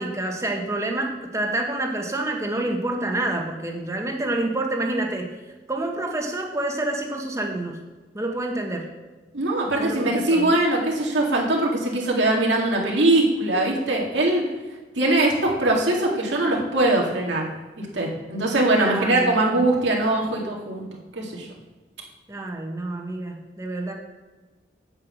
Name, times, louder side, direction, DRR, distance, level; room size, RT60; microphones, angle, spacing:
voice 1, 0.0-5.3 5.7-7.8 8.1-8.9 9.8-10.6 18.7-19.6 22.3-23.9, right 2 dB, 15° right, 2 dB, 1.2 m, -28 dB
voice 2, 9.3-14.4 15.0-17.5 17.9-20.8 21.2-21.5, right 2 dB, 80° right, -2 dB, 2.2 m, -21 dB
8.0 x 5.8 x 7.7 m, 1.3 s
head